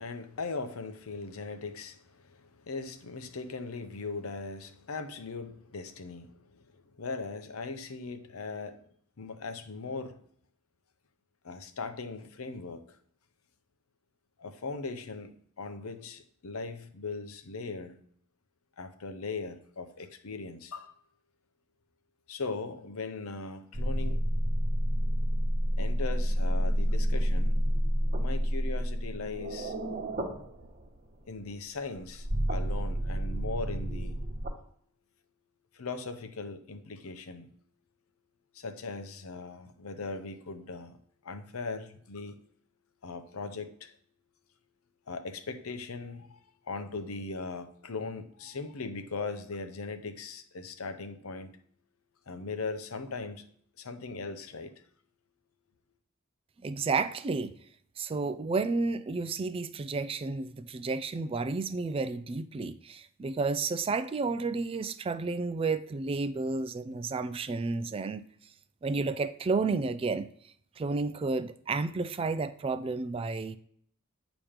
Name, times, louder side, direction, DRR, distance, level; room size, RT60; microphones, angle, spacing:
voice 1, 0.0-8.9 9.2-10.2 11.4-13.0 14.4-18.0 18.8-20.9 22.3-24.2 25.8-27.6 28.1-29.7 31.3-34.2 35.7-37.5 38.5-41.0 41.2-42.4 43.0-44.0 45.1-51.6 52.3-53.5 53.8-54.7, left 3 dB, 85° left, 0.7 m, -39 dB
sound 1, 23.7-31.0 32.0-34.5, equal, 40° right, 1.2 m, -29 dB
voice 2, 56.6-57.5 58.0-68.2 68.8-70.3 70.8-73.6, right 4 dB, 25° right, 0.3 m, -31 dB
8.7 x 3.0 x 5.0 m
head